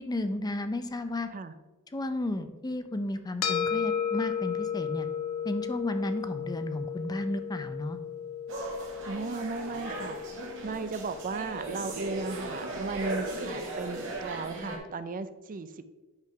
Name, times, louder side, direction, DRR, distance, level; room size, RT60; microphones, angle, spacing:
voice 1, 0.0-1.3 1.9-5.1 5.4-8.0, left 1 dB, 20° left, 9 dB, 0.4 m, -33 dB
sound 1, 3.4-12.0, left 8 dB, 65° left, 0.9 m, -34 dB
sound 2, 8.5-14.8, right 2 dB, 60° right, 1.8 m, -37 dB
voice 2, 9.0-10.2 10.6-15.8, right 4 dB, 40° right, 12 dB, 0.4 m, -36 dB
8.9 x 3.7 x 5.7 m, 1.2 s
head